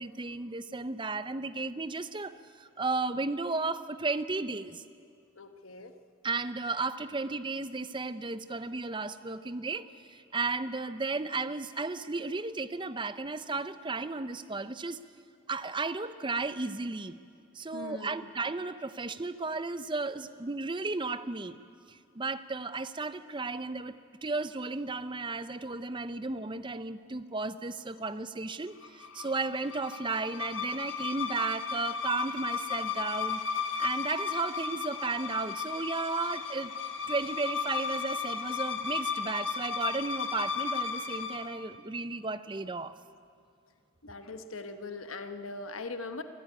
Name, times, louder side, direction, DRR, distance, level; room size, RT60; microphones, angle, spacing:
voice 1, 0.0-4.8 6.2-15.0 15.5-17.2 17.5-21.6 21.9-33.4 33.8-36.7 37.1-43.0, right 3 dB, 25° right, 13 dB, 0.6 m, -34 dB
voice 2, 5.4-5.9 17.7-18.3 44.0-46.2, left 3 dB, 80° left, 8 dB, 1.2 m, -40 dB
sound 1, 28.8-41.5, left 6 dB, 65° left, 1.4 m, -35 dB
23.5 x 13.5 x 9.9 m, 2.3 s
head